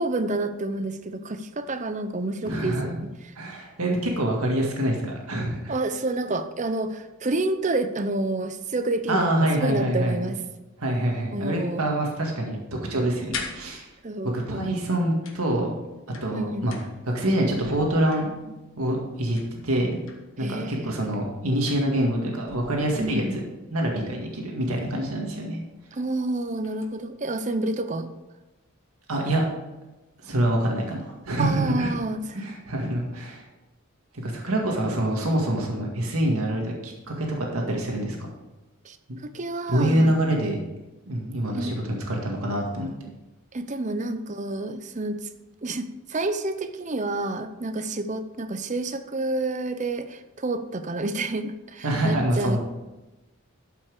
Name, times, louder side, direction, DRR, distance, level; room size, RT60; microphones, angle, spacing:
voice 1, 0.0-3.1 5.7-10.4 11.3-11.8 14.0-14.7 16.3-16.7 20.4-21.0 23.0-23.4 25.9-28.1 31.4-32.4 38.8-39.0 39.2-40.1 41.5-41.7 43.5-45.3 45.6-52.6, right 2 dB, 35° right, 9 dB, 0.6 m, -29 dB
voice 2, 2.5-2.9 3.4-5.7 9.1-10.2 10.8-12.6 12.9-13.9 14.3-15.8 16.2-16.8 17.1-19.4 19.6-20.0 20.4-23.4 23.7-25.6 29.1-29.4 30.2-31.9 32.3-33.4 34.2-38.2 39.1-39.2 39.7-40.6 41.1-42.9 51.8-52.6, right 1 dB, 85° right, 0 dB, 1.9 m, -25 dB
sound 1, 13.2-14.3 15.2-17.2 17.5-18.7 19.4-20.4 21.7-22.2 22.5-23.5 25.1-25.2 25.6-25.8 26.2-27.0, left 5 dB, 65° left, 1.5 m, -42 dB
12.5 x 5.9 x 4.9 m, 1.0 s
head